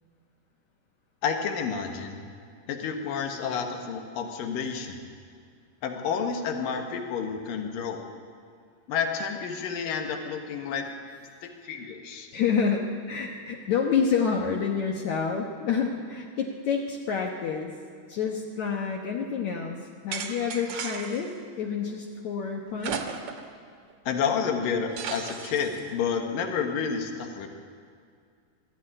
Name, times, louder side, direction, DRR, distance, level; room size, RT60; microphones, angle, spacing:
voice 1, 1.2-2.2 2.7-5.0 5.8-8.1 8.9-10.9 11.4-12.3 24.1-27.5, left 6 dB, 80° left, 4 dB, 3.2 m, -30 dB
voice 2, 12.3-17.7 18.1-19.8 20.0-21.3 21.6-23.0, left 6 dB, 65° left, 0 dB, 2.3 m, -28 dB
sound 1, 20.1-21.3 22.8-23.5 23.9-24.0 25.0-25.8, right 6 dB, 65° right, 2.3 m, -35 dB
19.5 x 14.0 x 9.8 m, 2.3 s
omnidirectional pair, 3.9 m